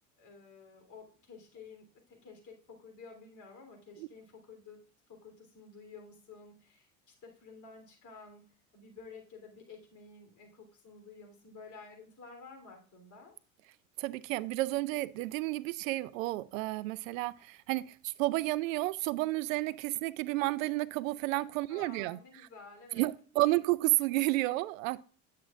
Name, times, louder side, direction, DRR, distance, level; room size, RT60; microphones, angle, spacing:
voice 1, 0.2-4.8 5.1-6.9 7.2-8.4 8.7-13.3 21.7-23.1 23.4-23.5, left 4 dB, 45° left, 3 dB, 3.3 m, -52 dB
voice 2, 14.0-22.2 22.9-25.0, right 19 dB, 75° right, 19 dB, 0.5 m, -31 dB
9.7 x 7.5 x 2.4 m, 0.41 s
hypercardioid pair, 70°, 41 cm